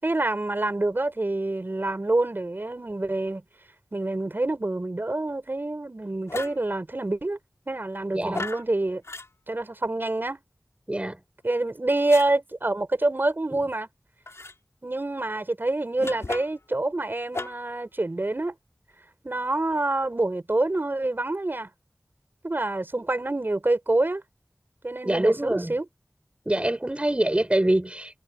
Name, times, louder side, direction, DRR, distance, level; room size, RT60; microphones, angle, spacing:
voice 1, 0.0-3.4 3.9-7.4 7.7-9.0 9.5-10.4 11.4-13.9 14.8-18.5 19.2-21.7 22.4-24.2 24.8-25.8, right 2 dB, 45° right, 6.6 m, -26 dB
sound 1, 6.3-6.7 8.3-8.7 9.0-9.3 12.1-12.3 14.3-14.6 16.0-16.7 17.3-17.7, left 3 dB, 70° left, 5.1 m, -35 dB
voice 2, 8.1-8.4 10.9-11.2 13.5-13.6 25.0-25.7 26.5-28.2, right 1 dB, 25° right, 4.5 m, -25 dB
wide cardioid pair, 55°, 5 cm